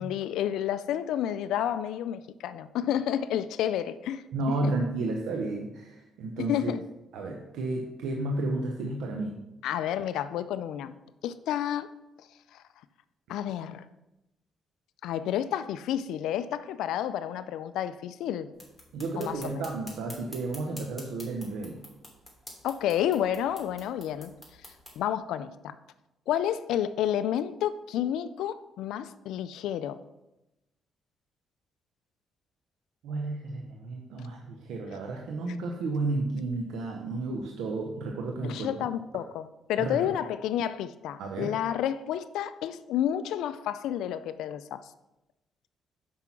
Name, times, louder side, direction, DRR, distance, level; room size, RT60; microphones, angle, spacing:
voice 1, 0.0-4.2 4.6-4.7 6.4-6.8 9.6-11.0 11.2-11.9 12.5-12.6 13.3-13.9 15.0-18.5 19.2-19.6 22.6-24.3 25.0-25.8 26.3-30.0 38.4-44.9, left 10 dB, 85° left, 0.4 m, -30 dB
voice 2, 4.3-6.7 7.1-9.4 18.9-21.8 33.0-38.7 39.8-40.0 41.2-41.5, right 2 dB, 90° right, 0.8 m, -32 dB
sound 1, 18.5-25.0, left 1 dB, 5° left, 3.0 m, -49 dB
6.1 x 5.6 x 5.8 m
cardioid pair, 90°, 0 cm